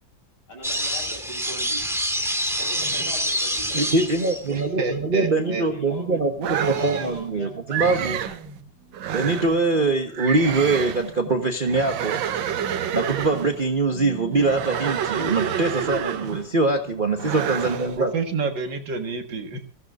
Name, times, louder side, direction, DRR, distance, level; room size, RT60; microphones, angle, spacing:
voice 1, 0.5-2.0 2.6-4.0 4.6-6.2 6.6-8.3, left 1 dB, 60° left, 2 dB, 5.6 m, -40 dB
sound 1, 0.6-4.7, equal, ahead, 1.7 m, -26 dB
sound 2, 2.7-16.3 16.7-18.6 18.8-18.9, right 4 dB, 55° right, 2.7 m, -46 dB
voice 2, 3.7-8.2 9.1-12.2 12.9-18.1, right 3 dB, 30° right, 4 dB, 1.1 m, -23 dB
voice 3, 4.5-5.6 6.4-7.1 18.0-19.6, right 4 dB, 70° right, 5 dB, 2.3 m, -29 dB
sound 3, 6.4-7.2 7.7-8.4 8.9-9.6 10.1-11.1 11.6-13.6 14.3-16.5 17.2-18.0, right 9 dB, 90° right, 1.6 m, -29 dB
22.5 x 15.5 x 2.5 m, 0.42 s
omnidirectional pair, 2.0 m